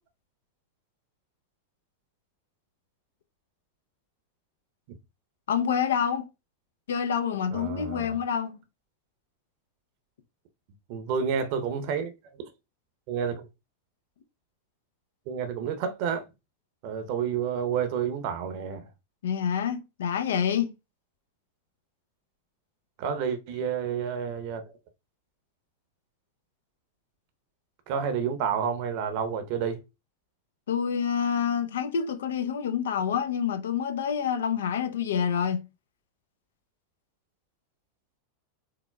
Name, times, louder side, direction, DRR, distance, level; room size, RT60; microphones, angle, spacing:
voice 1, 5.5-6.3 6.9-8.6 19.2-20.7 30.7-35.6, left 7 dB, 65° left, 0.5 m, -27 dB
voice 2, 7.5-8.1 10.9-12.1 13.1-13.5 15.3-16.2 16.8-18.9 23.0-24.6 27.9-29.8, right 7 dB, 50° right, 0.8 m, -29 dB
4.8 x 3.5 x 2.3 m
figure-of-eight pair, 90°, 0 cm